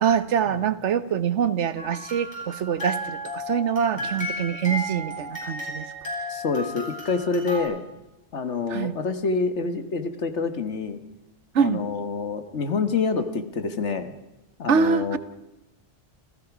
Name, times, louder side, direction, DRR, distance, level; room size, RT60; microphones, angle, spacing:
voice 1, 0.0-5.9 8.7-8.9 11.5-11.8 14.7-15.2, right 7 dB, 85° right, 14 dB, 1.3 m, -24 dB
sound 1, 1.8-7.6, equal, 40° left, 6.3 m, -33 dB
voice 2, 6.3-7.8 8.3-11.0 11.6-14.1 14.6-15.2, left 4 dB, 85° left, 9 dB, 1.7 m, -27 dB
27.5 x 15.5 x 6.0 m, 1.0 s
omnidirectional pair, 1.2 m